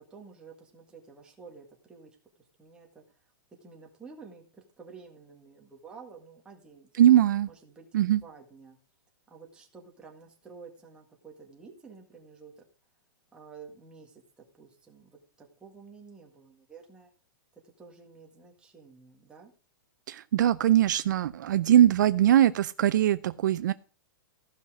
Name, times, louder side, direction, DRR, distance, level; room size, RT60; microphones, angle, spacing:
voice 1, 0.0-2.2 2.6-3.0 3.6-7.0 7.5-8.8 9.3-12.6 13.3-17.1 17.8-19.5, right 5 dB, 10° right, 0 dB, 1.7 m, -51 dB
voice 2, 7.0-7.5 7.9-8.2 20.1-23.7, right 11 dB, 60° right, 14 dB, 0.4 m, -21 dB
14.5 x 5.6 x 4.8 m, 0.38 s
hypercardioid pair, 170°, 11 cm